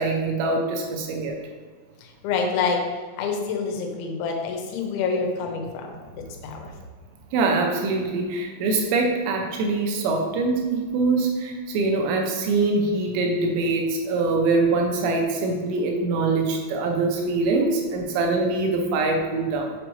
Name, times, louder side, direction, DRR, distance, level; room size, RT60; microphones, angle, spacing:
voice 1, 0.0-1.4 7.3-19.8, right 3 dB, 80° right, 2 dB, 2.9 m, -23 dB
voice 2, 2.0-2.8 3.2-6.7, left 5 dB, 85° left, 2 dB, 3.2 m, -27 dB
7.4 x 5.1 x 3.1 m, 1.5 s
omnidirectional pair, 5.2 m